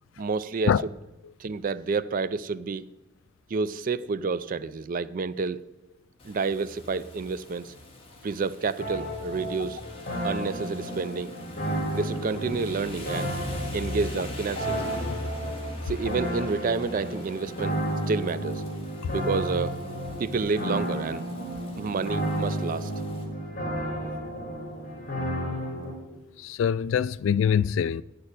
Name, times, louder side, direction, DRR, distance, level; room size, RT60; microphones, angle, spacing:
voice 1, 0.2-0.7 1.4-2.8 3.5-5.6 6.2-7.7 8.2-9.8 10.2-11.4 11.9-13.3 13.7-14.8 15.8-17.8 18.1-18.6 19.1-19.8 20.2-21.3 21.8-22.9, right 4 dB, 45° right, 0.4 m, -29 dB
Rain, 6.2-23.2, left 1 dB, 30° left, 1.9 m, -42 dB
sound 1, 8.8-25.9, equal, 45° left, 3.2 m, -32 dB
voice 2, 26.4-28.0, left 8 dB, 70° left, 0.3 m, -24 dB
8.4 x 6.6 x 7.9 m
head